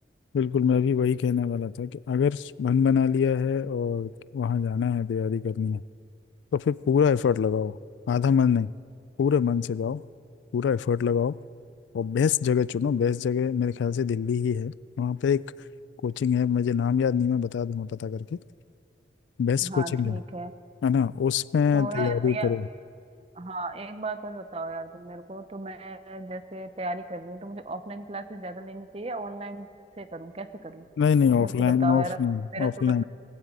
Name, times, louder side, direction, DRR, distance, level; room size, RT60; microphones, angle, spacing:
voice 1, 0.3-5.8 6.5-7.8 8.1-8.7 9.2-10.0 10.5-11.4 11.9-15.4 16.0-18.4 19.4-20.2 20.8-22.6 31.0-33.0, left 7 dB, 90° left, 20 dB, 0.3 m, -24 dB
voice 2, 19.6-20.5 21.7-22.5 23.3-29.7 30.0-30.9 31.4-32.2 32.5-33.0, right 2 dB, 35° right, 10 dB, 0.7 m, -35 dB
18.5 x 8.9 x 8.3 m, 2.4 s
head